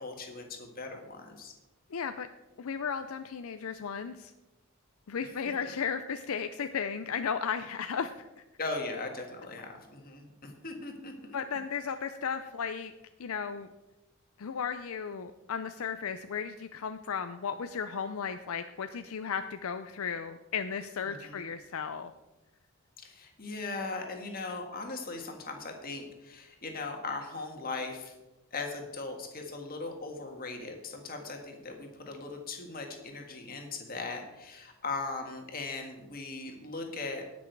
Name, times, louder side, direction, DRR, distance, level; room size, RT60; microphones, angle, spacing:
voice 1, 0.0-1.5 5.4-5.5 8.6-11.4 21.0-21.4 23.0-28.1 28.5-37.2, left 3 dB, 40° left, 3 dB, 1.7 m, -39 dB
voice 2, 1.9-2.3 2.6-4.3 5.1-8.3 11.3-12.9 13.2-13.7 14.4-22.1, left 6 dB, 70° left, 9 dB, 0.5 m, -35 dB
18.5 x 6.2 x 4.6 m, 1.0 s
head